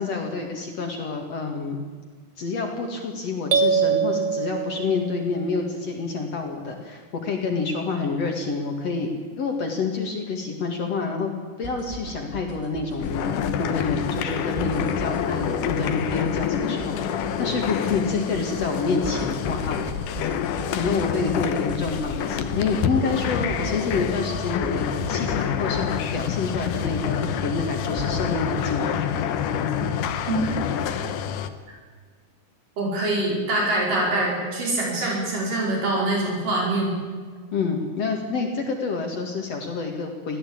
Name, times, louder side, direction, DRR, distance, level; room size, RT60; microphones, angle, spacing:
voice 1, 0.0-1.8 2.4-9.1 9.4-11.3 11.6-19.8 20.7-29.2 37.5-40.4, left 4 dB, 55° left, 2 dB, 3.0 m, -28 dB
sound 1, 3.5-5.4, right 6 dB, 55° right, 2.3 m, -23 dB
sound 2, 11.6-28.2, right 1 dB, 5° right, 3.2 m, -39 dB
sound 3, 13.0-31.5, left 8 dB, 80° left, 2.7 m, -27 dB
voice 2, 32.8-37.0, right 2 dB, 85° right, -2 dB, 6.4 m, -24 dB
21.5 x 15.0 x 8.6 m, 1.5 s
omnidirectional pair, 3.7 m